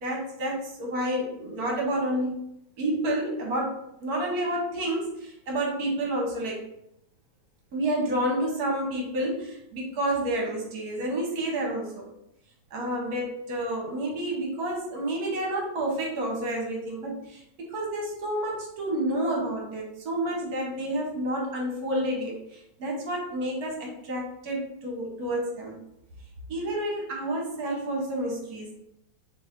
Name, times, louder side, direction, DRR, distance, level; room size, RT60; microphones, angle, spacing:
voice 1, 0.0-2.4 2.8-6.6 7.7-12.1 12.7-17.4 17.7-25.8 26.5-28.8, right 1 dB, 55° right, -1 dB, 1.2 m, -29 dB
4.6 x 3.1 x 2.5 m, 0.80 s
omnidirectional pair, 2.2 m